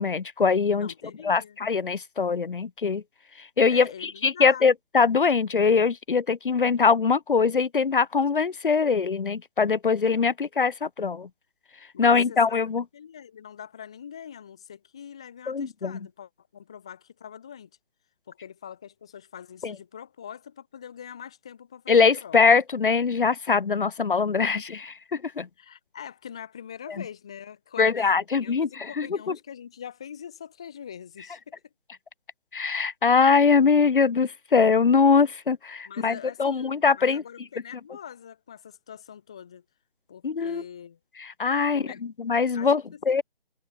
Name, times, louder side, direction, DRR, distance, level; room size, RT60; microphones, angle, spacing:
voice 1, 0.0-0.9 1.2-3.0 3.6-11.3 12.0-12.8 15.5-16.0 19.6-19.7 21.9-25.5 27.8-29.4 32.5-37.2 40.2-40.6 41.2-41.8 42.2-43.2, left 5 dB, 60° left, 0.7 m, -22 dB
voice 2, 0.8-1.6 3.7-4.6 11.9-12.4 12.9-17.7 18.3-22.4 25.6-31.6 35.9-39.6 40.1-41.0 41.7-42.0 42.5-43.0, left 8 dB, 5° left, 0.6 m, -43 dB
figure-of-eight pair, 155°, 30 cm